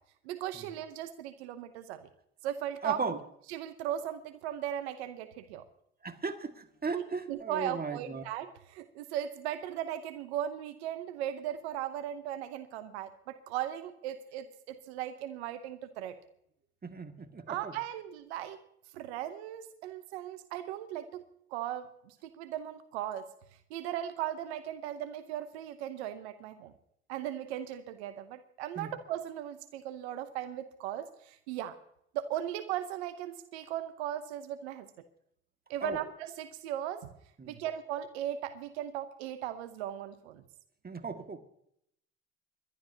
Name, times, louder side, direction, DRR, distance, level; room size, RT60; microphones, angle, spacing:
voice 1, 0.2-2.1 2.4-3.2 3.5-5.6 6.9-16.2 17.5-18.6 18.9-21.3 21.5-23.3 23.7-26.7 27.1-31.8 32.1-34.9 35.7-37.1 37.5-40.4, right 11 dB, 90° right, 0.8 m, -37 dB
voice 2, 2.8-3.2 6.0-8.2 16.8-17.8 28.8-28.9 35.8-36.0 37.4-37.6 40.8-41.4, right 4 dB, 30° right, 1.9 m, -36 dB
29.0 x 12.0 x 2.8 m
hypercardioid pair, 55°, 31 cm